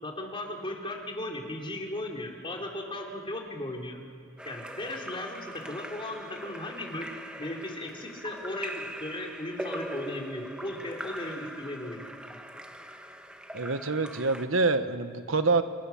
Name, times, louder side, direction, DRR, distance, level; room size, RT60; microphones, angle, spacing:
voice 1, 0.0-4.0 4.4-7.1 7.4-12.2, left 1 dB, 25° left, 0 dB, 3.4 m, -36 dB
Splash splatter / Drip / Trickle dribble, 4.4-14.5, right 1 dB, 5° right, 1.3 m, -41 dB
voice 2, 13.5-15.6, right 3 dB, 70° right, 10 dB, 1.3 m, -26 dB
26.0 x 22.5 x 7.2 m, 2.5 s
head